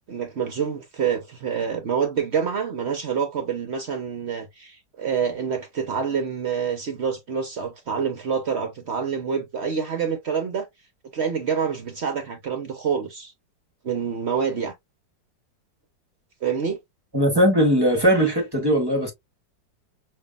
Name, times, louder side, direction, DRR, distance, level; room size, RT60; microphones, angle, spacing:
voice 1, 0.1-10.7 11.1-13.3 13.8-14.7 16.4-16.8, right 6 dB, 60° right, 0.7 m, -27 dB
voice 2, 17.1-19.1, equal, 20° right, 0.7 m, -19 dB
5.6 x 2.5 x 2.3 m
omnidirectional pair, 2.0 m